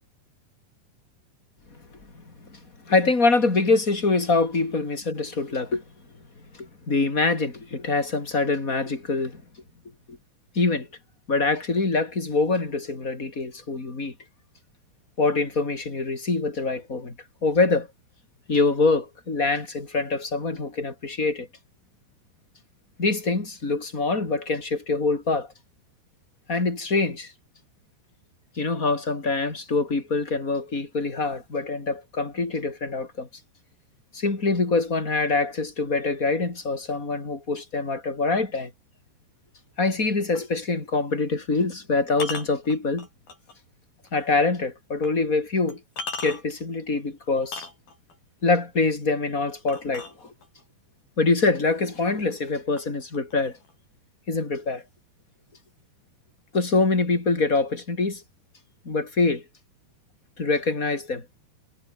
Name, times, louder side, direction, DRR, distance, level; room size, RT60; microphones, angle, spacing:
voice 1, 2.9-5.8 6.5-9.4 10.1-10.2 10.5-10.9 11.3-14.1 15.2-17.1 17.4-17.9 18.5-21.5 23.0-25.5 26.5-27.3 28.6-33.3 34.1-38.7 39.8-43.1 44.1-45.8 46.2-47.7 48.4-50.3 51.2-53.6 54.3-54.8 56.5-58.2 58.8-59.4 60.4-61.2, left 3 dB, 20° left, 4.2 m, -24 dB
sound 1, 40.4-40.5 42.1-43.6 44.1-44.2 45.0-45.1 45.7-46.6 47.4-48.2 49.7-50.6 51.6-51.7 52.1-52.5 52.8-53.7, left 4 dB, 50° left, 9.2 m, -37 dB
omnidirectional pair, 5.5 m